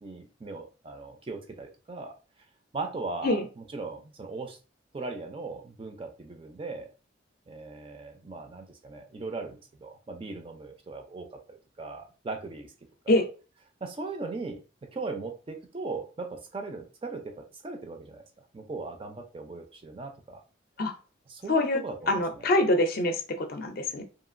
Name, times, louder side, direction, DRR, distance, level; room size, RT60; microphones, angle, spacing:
voice 1, 0.0-2.1 2.7-4.6 4.9-6.9 7.5-11.3 11.8-12.7 13.0-13.2 13.8-14.6 14.9-18.2 18.5-20.4 21.3-22.5, right 3 dB, 25° right, 4 dB, 0.4 m, -38 dB
voice 2, 21.5-21.8 22.1-24.0, left 1 dB, 50° left, 6 dB, 0.4 m, -25 dB
2.8 x 2.4 x 2.5 m, 0.34 s
head